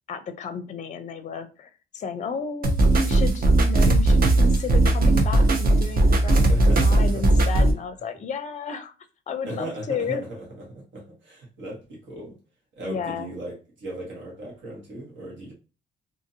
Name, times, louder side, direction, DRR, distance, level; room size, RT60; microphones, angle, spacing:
voice 1, 0.1-6.4 6.7-8.9 9.3-10.2 12.8-13.3, left 5 dB, 40° left, 11 dB, 0.5 m, -33 dB
sound 1, 2.6-7.7, right 2 dB, 50° right, 0.7 m, -18 dB
voice 2, 6.5-7.5 9.4-12.4 12.7-15.5, right 1 dB, 70° right, -2 dB, 1.4 m, -37 dB
2.8 x 2.6 x 2.7 m, 0.34 s
cardioid pair, 90°, 20 cm